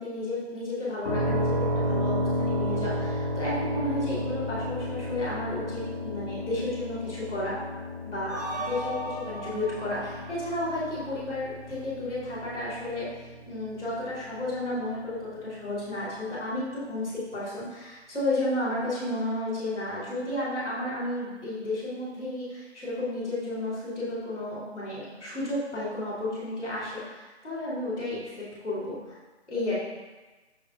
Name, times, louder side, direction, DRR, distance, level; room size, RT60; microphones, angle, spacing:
voice 1, 0.0-7.6 8.0-13.1 13.5-28.9 29.5-29.8, left 1 dB, ahead, -26 dB, 1.4 m, -32 dB
sound 1, 1.0-14.7, left 1 dB, 40° left, 1.5 m, -32 dB
sound 2, 8.3-11.4, equal, 35° right, 0.6 m, -37 dB
7.5 x 6.3 x 2.5 m, 1.2 s
hypercardioid pair, 175°, 35 cm